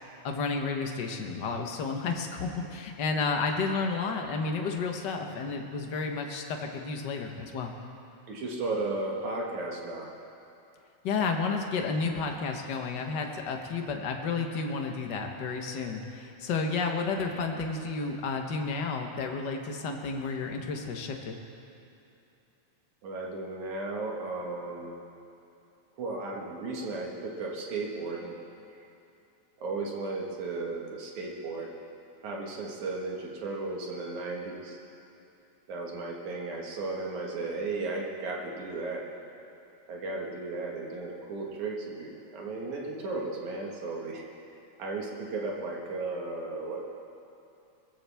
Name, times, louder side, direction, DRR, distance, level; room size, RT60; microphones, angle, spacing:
voice 1, 0.2-7.7 11.0-21.4, left 4 dB, 60° left, 3 dB, 1.1 m, -31 dB
voice 2, 8.3-10.1 23.0-24.9 26.0-28.4 29.6-31.7 32.2-34.8 35.7-39.0 39.9-44.2 44.8-46.9, right 3 dB, 80° right, -2 dB, 3.0 m, -35 dB
22.0 x 14.5 x 3.5 m, 2.7 s
omnidirectional pair, 3.4 m